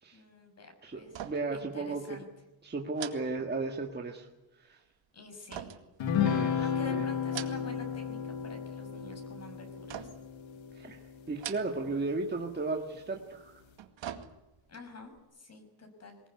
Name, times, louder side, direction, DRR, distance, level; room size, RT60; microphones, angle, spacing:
voice 1, 0.1-1.1 1.5-2.3 5.1-5.7 6.6-10.1 14.7-16.2, left 2 dB, 35° left, 6 dB, 6.1 m, -48 dB
voice 2, 0.8-2.0 2.6-4.3 4.6-4.8 6.2-7.0 10.7-13.5, right 3 dB, 20° right, 2 dB, 1.8 m, -35 dB
sound 1, 1.1-1.6 1.9-2.1 2.9-4.0 5.5-6.6 7.1-7.9 8.2-8.8 9.9-10.4 11.3-12.0 12.3-12.4 13.5-14.7 15.1-15.2, right 10 dB, 70° right, 2.2 m, -44 dB
sound 2, 6.0-11.7, left 7 dB, 75° left, 2.2 m, -33 dB
23.5 x 20.0 x 9.7 m, 1.0 s
wide cardioid pair, 170°, 46 cm